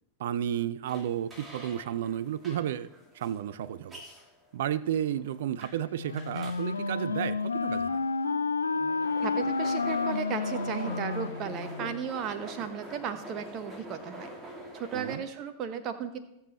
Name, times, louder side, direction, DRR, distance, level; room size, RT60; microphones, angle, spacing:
voice 1, 0.2-2.9 3.1-4.0 4.5-8.0 14.9-15.2, right 10 dB, 55° right, 18 dB, 0.4 m, -32 dB
sound 1, 0.9-15.2, equal, 15° right, 2.4 m, -46 dB
Wind instrument woodwind instrument, 6.0-12.1, left 4 dB, 75° left, 0.5 m, -30 dB
voice 2, 9.2-14.3 14.7-16.2, right 8 dB, 35° right, 9 dB, 1.1 m, -35 dB
19.5 x 7.1 x 3.1 m, 0.86 s
figure-of-eight pair, 90°, 0 cm